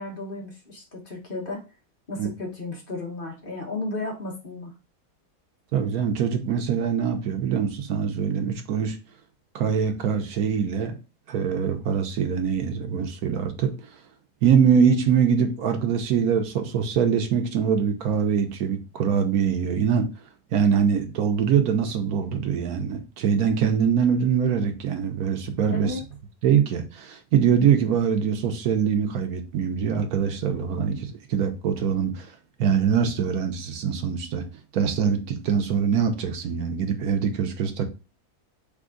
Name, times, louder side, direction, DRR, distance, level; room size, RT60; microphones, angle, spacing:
voice 1, 0.0-1.6 2.1-4.7 25.7-26.0, left 2 dB, 35° left, 1.4 m, -34 dB
voice 2, 5.7-9.0 9.5-10.9 11.3-13.7 14.4-20.1 20.5-25.9 26.4-32.3 32.6-34.4 34.7-37.9, right 7 dB, 75° right, 1.3 m, -23 dB
3.6 x 3.5 x 3.8 m
omnidirectional pair, 1.6 m